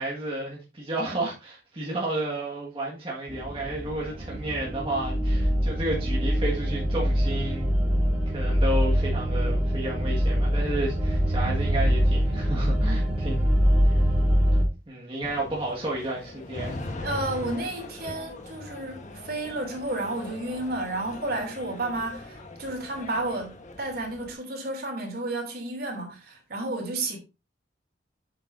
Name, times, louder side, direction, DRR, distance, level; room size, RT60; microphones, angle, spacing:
voice 1, 0.0-7.7 8.3-14.0 14.9-16.9, right 1 dB, 30° right, 1.8 m, -32 dB
sound 1, 3.3-14.6, equal, 5° right, 2.7 m, -24 dB
sound 2, 15.2-24.3, left 2 dB, 45° left, 1.3 m, -40 dB
voice 2, 17.0-27.2, right 2 dB, 60° right, 2.9 m, -32 dB
8.1 x 8.0 x 2.6 m
head